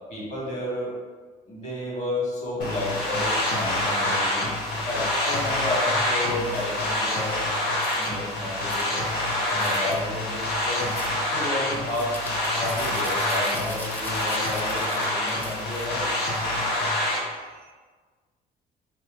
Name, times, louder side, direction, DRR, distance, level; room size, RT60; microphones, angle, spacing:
voice 1, 0.1-0.9 1.5-4.4 4.8-7.4 7.9-9.1 9.5-10.9 11.3-16.1, left 1 dB, 45° left, 1.4 m, -31 dB
sound 1, 2.6-17.2, left 1 dB, 85° left, 0.8 m, -26 dB
sound 2, 7.8-8.1 8.7-8.9 9.5-10.0 10.8-11.2 11.9-16.1, left 1 dB, 10° left, 0.5 m, -42 dB
voice 2, 16.5-17.7, right 7 dB, 70° right, 0.5 m, -57 dB
3.2 x 2.9 x 3.6 m
cardioid pair, 110°, 17 cm